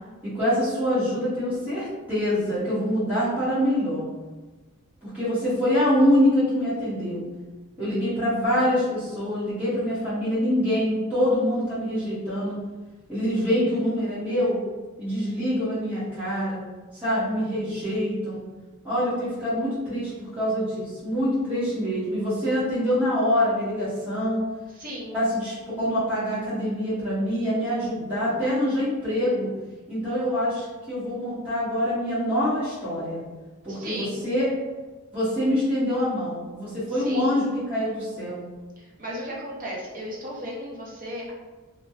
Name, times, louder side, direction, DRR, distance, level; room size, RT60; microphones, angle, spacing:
voice 1, 0.2-4.0 5.0-7.2 7.8-12.6 13.1-14.6 15.0-16.6 16.9-18.4 18.8-24.4 25.1-29.5 29.9-33.2 33.6-34.5 35.1-38.4, equal, 10° right, -13 dB, 1.2 m, -25 dB
voice 2, 24.8-25.2 33.7-34.2 36.9-37.4 38.8-41.3, equal, 40° right, -4 dB, 0.7 m, -35 dB
3.2 x 2.2 x 2.7 m, 1.3 s
head